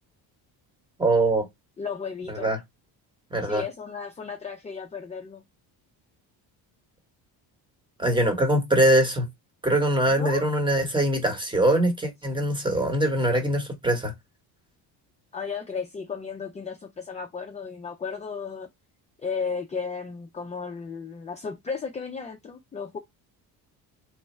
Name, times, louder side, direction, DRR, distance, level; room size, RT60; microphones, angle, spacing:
voice 1, 1.0-1.5 2.4-2.6 3.3-3.6 8.0-9.3 9.6-14.1, right 1 dB, 10° right, 1.1 m, -22 dB
voice 2, 1.8-2.5 3.4-5.4 10.2-10.4 15.3-18.7 19.2-23.0, left 5 dB, 15° left, 0.5 m, -34 dB
3.1 x 2.2 x 4.2 m
cardioid pair, 100°, 42 cm